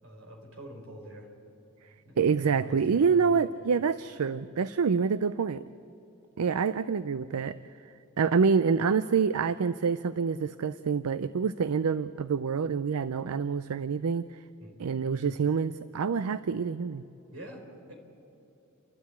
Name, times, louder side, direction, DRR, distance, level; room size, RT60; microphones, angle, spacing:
voice 1, 0.0-1.3 2.0-3.4 14.6-14.8 17.3-17.9, equal, 65° right, 2 dB, 4.3 m, -46 dB
voice 2, 2.2-5.6 6.4-7.6 8.2-14.2 14.8-17.0, right 6 dB, 80° right, 14 dB, 0.5 m, -27 dB
29.0 x 12.5 x 8.5 m, 2.9 s
head